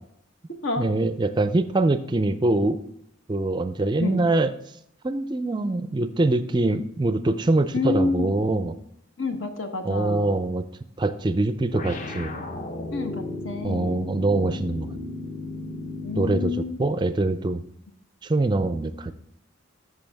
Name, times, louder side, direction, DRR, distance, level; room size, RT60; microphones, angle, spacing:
voice 1, 0.8-2.8 3.3-4.5 5.0-8.8 9.8-10.6 11.0-12.3 13.6-15.0 16.2-16.5 16.8-17.6 18.2-19.1, right 2 dB, 20° right, 11 dB, 0.4 m, -23 dB
voice 2, 7.7-8.3 9.2-10.4 12.9-14.1 16.0-16.8, left 3 dB, 75° left, 6 dB, 1.1 m, -28 dB
sound 1, 11.7-16.4, left 2 dB, 40° left, 0.7 m, -35 dB
14.0 x 5.6 x 3.4 m, 0.73 s
head